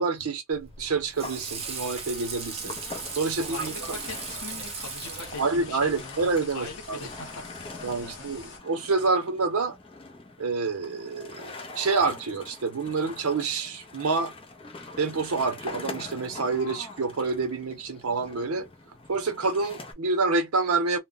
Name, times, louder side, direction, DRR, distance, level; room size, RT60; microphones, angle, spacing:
voice 1, 0.0-2.8 3.2-4.0 5.4-7.0 7.8-9.8 10.4-14.3 15.0-18.7 19.1-21.0, right 4 dB, 80° right, 0.7 m, -27 dB
Water / Sink (filling or washing), 0.5-6.0, right 5 dB, 25° right, 0.5 m, -38 dB
sound 1, 0.8-19.9, left 2 dB, 25° left, 0.5 m, -44 dB
sound 2, 1.6-8.6, left 4 dB, 55° left, 0.8 m, -46 dB
voice 2, 3.4-6.2 6.5-7.4 7.7-8.3, left 3 dB, 85° left, 0.8 m, -41 dB
2.1 x 2.1 x 3.8 m
head